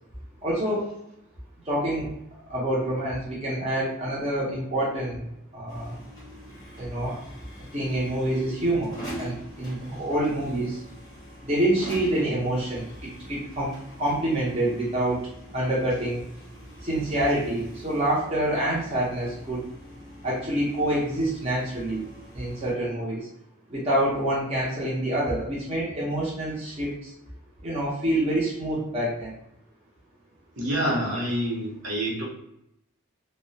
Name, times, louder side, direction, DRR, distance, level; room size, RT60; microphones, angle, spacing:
voice 1, 0.4-0.9 1.6-2.1 2.5-5.9 6.8-7.2 7.7-10.8 11.4-16.2 16.8-19.7 20.2-22.1 22.3-23.3 23.7-27.1 27.6-29.3 31.1-31.2, right 1 dB, 30° right, -7 dB, 0.6 m, -27 dB
sound 1, 5.7-22.7, equal, 15° left, 0.7 m, -44 dB
voice 2, 30.6-32.2, equal, 60° right, -4 dB, 0.8 m, -27 dB
2.2 x 2.1 x 2.6 m, 0.78 s
head